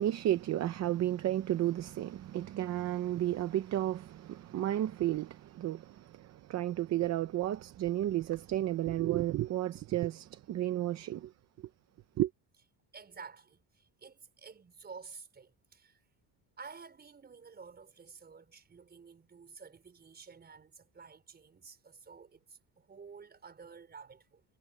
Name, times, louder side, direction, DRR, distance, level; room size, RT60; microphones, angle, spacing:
voice 1, 0.0-11.3 12.2-12.3, right 13 dB, 35° right, 0.7 m, -32 dB
voice 2, 12.9-16.0 16.6-24.4, right 5 dB, 20° right, 5.3 m, -51 dB
cardioid pair, 175°, 46 cm